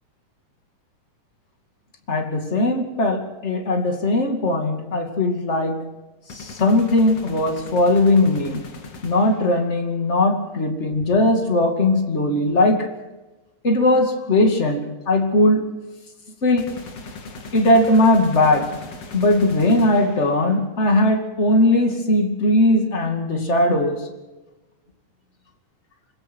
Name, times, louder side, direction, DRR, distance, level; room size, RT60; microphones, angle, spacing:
voice 1, 2.1-5.9 6.3-8.6 9.0-12.9 13.6-15.7 16.4-16.8 17.5-18.7 19.1-24.1, left 1 dB, 25° left, 2.1 m, -19 dB
sound 1, 6.3-9.7 16.6-20.6, left 3 dB, 50° left, 3.3 m, -39 dB
26.0 x 22.5 x 4.6 m
omnidirectional pair, 4.0 m